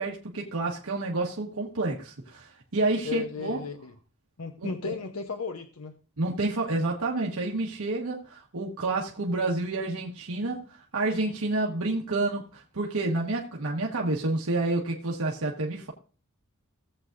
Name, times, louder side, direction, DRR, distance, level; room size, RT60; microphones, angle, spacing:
voice 1, 0.0-3.6 4.6-4.9 6.2-10.6 10.9-15.9, right 2 dB, 80° right, 1.3 m, -29 dB
voice 2, 3.0-3.9 4.4-5.9, left 4 dB, 80° left, 0.8 m, -35 dB
17.0 x 7.7 x 2.5 m
head